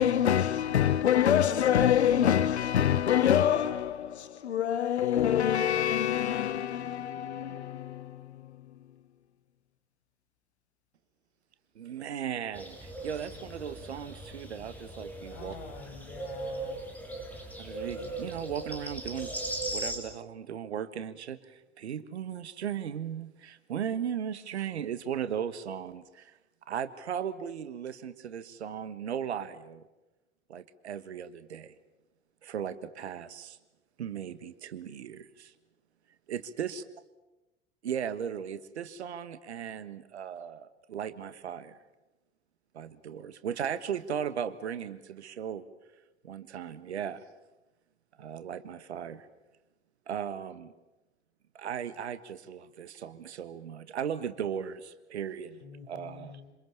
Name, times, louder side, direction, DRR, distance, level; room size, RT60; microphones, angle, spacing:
voice 1, 0.0-8.4, left 10 dB, 75° left, 0.9 m, -26 dB
voice 2, 11.7-15.5 17.6-19.3 19.6-26.4 26.7-29.8 30.5-31.7 32.4-33.6 34.0-35.5 36.3-36.8 37.8-41.8 42.7-45.7 46.2-47.2 48.2-49.3 50.1-50.7 51.5-55.6 55.9-56.3, right 8 dB, 70° right, 1.6 m, -37 dB
sound 1, 12.5-20.0, right 1 dB, 5° left, 7.6 m, -39 dB
voice 3, 15.3-16.8 55.6-56.6, left 6 dB, 55° left, 5.2 m, -47 dB
27.0 x 26.5 x 7.2 m
figure-of-eight pair, 75°, 34 cm